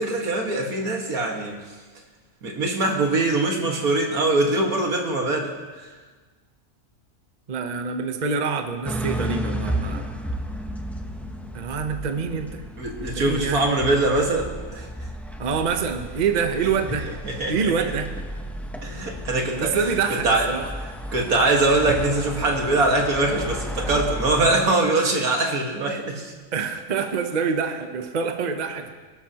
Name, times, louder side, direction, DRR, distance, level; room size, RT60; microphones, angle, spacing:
voice 1, 0.0-1.6 2.4-5.5 12.8-14.9 17.2-17.7 18.8-19.8 20.2-20.5 21.1-26.3, right 2 dB, 80° right, 1 dB, 2.2 m, -22 dB
voice 2, 7.5-10.1 11.5-12.6 13.0-13.6 15.4-17.1 17.5-18.1 19.5-20.7 26.5-28.9, right 5 dB, 35° right, 6 dB, 0.8 m, -26 dB
sound 1, 8.9-24.6, equal, ahead, 0.4 m, -33 dB
23.5 x 11.5 x 2.9 m, 1.3 s
omnidirectional pair, 1.5 m